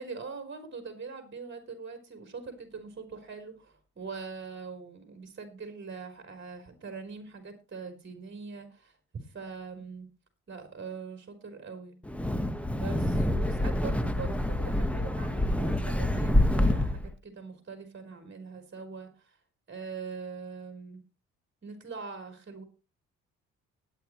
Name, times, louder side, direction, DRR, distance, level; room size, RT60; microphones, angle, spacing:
voice 1, 0.0-9.0 9.3-10.1 10.5-12.0 12.7-19.4 19.7-21.0 21.6-22.6, right 5 dB, 40° right, 5 dB, 4.0 m, -42 dB
Wind, 12.0-17.1, left 1 dB, 5° left, 1.3 m, -27 dB
19.5 x 9.2 x 3.1 m, 0.29 s
cardioid pair, 90°, 30 cm